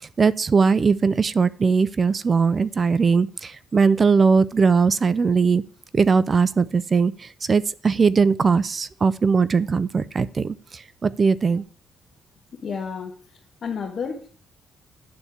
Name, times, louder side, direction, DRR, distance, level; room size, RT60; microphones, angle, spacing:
voice 1, 0.2-5.6 5.9-11.6, right 5 dB, 35° right, 0.5 m, -20 dB
voice 2, 12.5-13.1 13.6-14.3, left 6 dB, 55° left, 1.5 m, -30 dB
10.0 x 4.3 x 6.9 m
cardioid pair, 90°, 0 cm